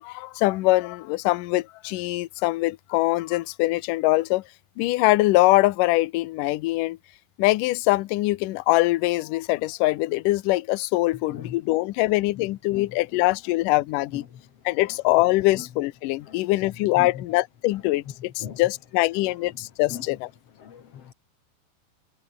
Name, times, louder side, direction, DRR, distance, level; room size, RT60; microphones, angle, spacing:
voice 1, 0.0-4.4 4.8-7.0 7.4-14.2 14.7-20.3, left 19 dB, 75° left, 2.0 m, -23 dB
voice 2, 20.6-21.1, left 9 dB, 55° left, 1.8 m, -37 dB
omnidirectional pair, 4.7 m